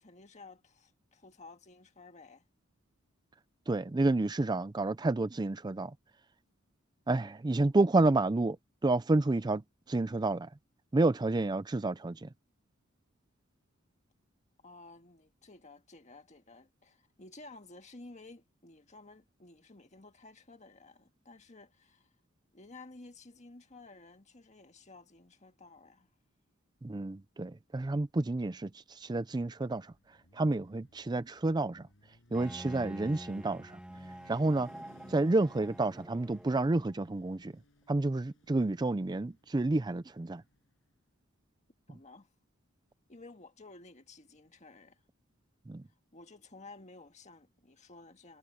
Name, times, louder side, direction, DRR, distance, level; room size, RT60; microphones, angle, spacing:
voice 1, 0.0-2.5 14.6-22.1 22.5-26.1 41.9-42.3 43.1-45.0 46.1-48.4, left 3 dB, 35° left, 1.8 m, -53 dB
voice 2, 3.7-5.9 7.1-8.6 8.8-9.6 9.9-10.5 10.9-12.3 26.8-29.9 30.3-31.9 32.3-33.8 34.3-34.7 35.1-37.5 37.9-40.4 45.7-45.8, right 2 dB, 20° right, 0.4 m, -29 dB
Motorcycle, 29.4-40.9, left 1 dB, 65° left, 6.7 m, -62 dB
Bowed string instrument, 32.3-37.1, equal, 5° right, 2.0 m, -48 dB
head